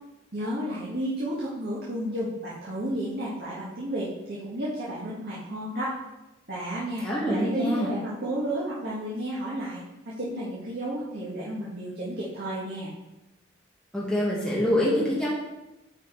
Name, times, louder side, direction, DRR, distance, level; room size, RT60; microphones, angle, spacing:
voice 1, 0.3-5.9 6.5-9.8 10.1-12.9, right 1 dB, 55° right, -7 dB, 1.7 m, -32 dB
voice 2, 7.0-7.9 13.9-15.3, equal, 5° left, -6 dB, 1.7 m, -25 dB
8.8 x 4.9 x 4.6 m, 0.97 s
head